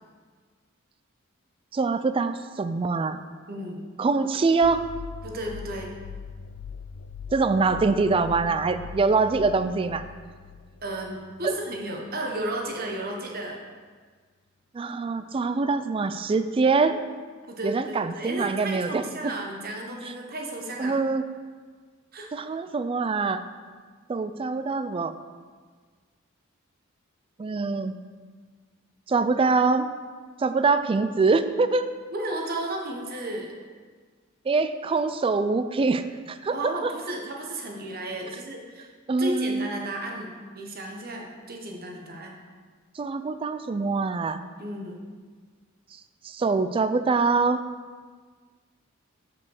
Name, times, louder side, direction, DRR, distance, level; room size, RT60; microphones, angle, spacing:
voice 1, 1.7-3.2 4.0-4.9 7.3-10.0 11.4-11.5 14.7-17.0 17.6-19.3 20.8-21.2 22.3-23.4 24.1-25.1 27.4-27.9 29.1-29.9 30.4-31.9 34.5-36.9 39.1-39.7 43.0-44.4 46.2-47.6, right 4 dB, 25° right, 11 dB, 0.3 m, -24 dB
voice 2, 3.5-3.8 5.2-5.9 10.8-13.6 17.5-21.0 22.1-22.3 32.1-33.5 36.5-38.9 39.2-42.4 44.6-45.0, right 1 dB, 50° right, 1 dB, 1.1 m, -33 dB
sound 1, 4.6-11.8, left 6 dB, 75° left, 0.4 m, -41 dB
5.4 x 5.3 x 6.3 m, 1.6 s
head